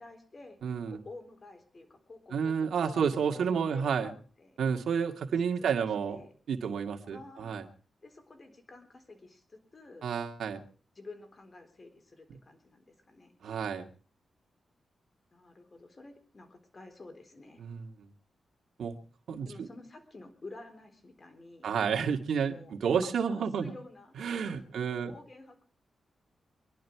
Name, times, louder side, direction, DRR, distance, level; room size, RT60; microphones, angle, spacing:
voice 1, 0.0-0.6 0.9-4.6 5.6-6.3 7.1-7.6 8.0-10.1 10.9-13.4 15.3-17.6 19.5-21.7 22.4-22.8 23.0-25.6, left 2 dB, 35° left, 6 dB, 3.9 m, -51 dB
voice 2, 0.6-1.0 2.3-4.1 4.6-6.2 6.5-7.6 10.0-10.6 13.4-13.9 17.6-18.1 18.8-18.9 19.3-19.7 21.6-23.7 24.2-25.1, right 6 dB, 80° right, 4 dB, 2.0 m, -30 dB
24.0 x 11.5 x 4.7 m, 0.41 s
cardioid pair, 85°, 0 cm